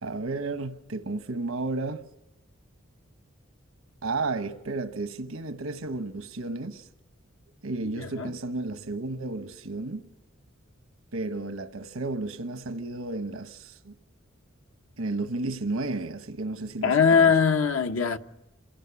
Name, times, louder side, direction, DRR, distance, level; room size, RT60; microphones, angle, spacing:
voice 1, 0.0-2.0 4.0-6.9 7.6-10.1 11.1-13.9 15.0-17.3, right 3 dB, 90° right, 1.1 m, -32 dB
voice 2, 7.8-8.3 16.8-18.2, left 6 dB, 80° left, 1.1 m, -21 dB
27.5 x 17.0 x 9.6 m
head